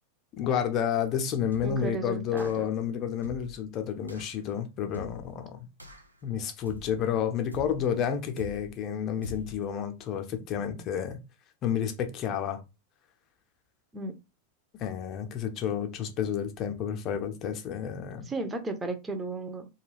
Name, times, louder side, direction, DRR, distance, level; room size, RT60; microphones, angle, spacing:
voice 1, 0.3-5.7 6.2-11.2 11.6-12.6 14.7-18.3, left 8 dB, 35° left, 0.6 m, -30 dB
sound 1, 1.5-1.9 2.4-2.8 3.2-3.6 4.1-4.4 4.9-5.4 5.8-6.2 6.7-7.1 7.5-7.9 8.4-8.8 9.2-9.7, left 1 dB, 85° right, 0.4 m, -44 dB
voice 2, 1.6-2.7 13.9-14.2 18.1-19.7, right 2 dB, 15° right, 0.6 m, -34 dB
2.3 x 2.3 x 3.2 m
figure-of-eight pair, 90°, 0 cm